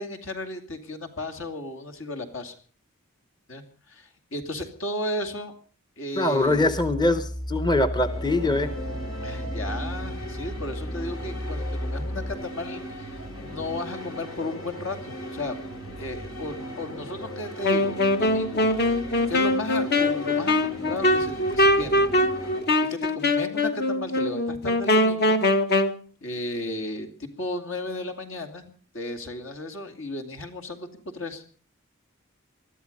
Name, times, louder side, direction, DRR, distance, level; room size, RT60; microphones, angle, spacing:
voice 1, 0.0-2.5 3.5-5.5 6.0-6.6 9.2-15.6 16.0-18.7 19.3-22.0 22.8-25.4 26.2-31.4, left 1 dB, 70° left, 7 dB, 2.7 m, -34 dB
voice 2, 6.2-8.7, left 2 dB, 20° left, 12 dB, 0.8 m, -23 dB
sound 1, 6.4-12.3, equal, 35° left, 2.5 m, -33 dB
sound 2, 7.9-22.6, equal, 85° left, 5.5 m, -38 dB
Wind instrument woodwind instrument, 17.6-26.0, left 1 dB, 55° left, 1.4 m, -22 dB
20.5 x 13.5 x 5.3 m, 0.41 s
head